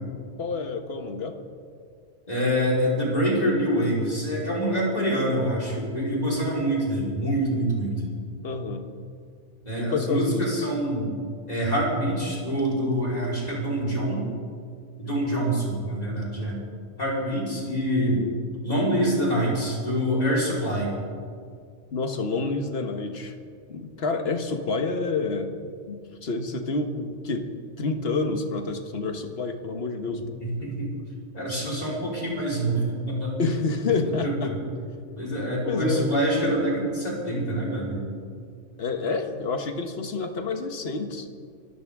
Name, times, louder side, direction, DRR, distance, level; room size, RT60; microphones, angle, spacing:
voice 1, 0.4-1.3 8.4-8.9 9.8-10.7 21.9-23.3 23.7-25.5 25.9-27.5 27.8-30.2 33.4-34.5 35.7-36.1 38.8-41.3, left 3 dB, 55° left, 6 dB, 1.4 m, -28 dB
voice 2, 2.3-8.0 9.6-11.1 11.5-14.3 15.0-16.6 17.0-18.2 18.6-20.9 30.4-30.9 31.3-33.4 34.0-34.6 35.2-38.0, equal, 35° left, -5 dB, 4.4 m, -25 dB
25.0 x 13.5 x 3.6 m, 2.2 s
omnidirectional pair, 1.2 m